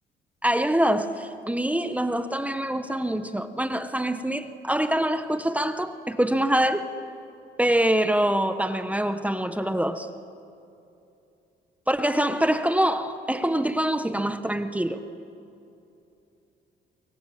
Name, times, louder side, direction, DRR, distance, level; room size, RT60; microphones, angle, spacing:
voice 1, 0.4-6.9 7.6-10.1 11.9-15.0, right 1 dB, 5° right, 1.2 m, -25 dB
24.5 x 24.0 x 7.6 m
cardioid pair, 90°, 20 cm